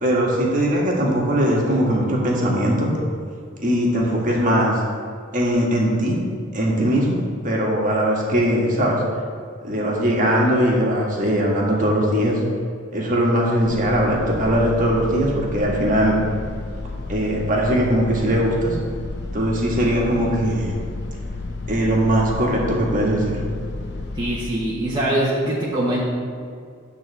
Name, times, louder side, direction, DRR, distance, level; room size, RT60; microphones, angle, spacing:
voice 1, 0.0-2.9 3.6-4.8 5.3-6.2 6.5-9.0 9.6-12.4 12.9-16.2 17.1-18.8 19.3-20.7 21.7-23.4, equal, 40° right, -3 dB, 1.6 m, -20 dB
sound 1, 13.6-24.4, left 2 dB, 60° left, 0.8 m, -32 dB
voice 2, 24.1-26.0, right 1 dB, 20° right, -7 dB, 1.0 m, -23 dB
8.9 x 4.0 x 7.1 m, 2.2 s
head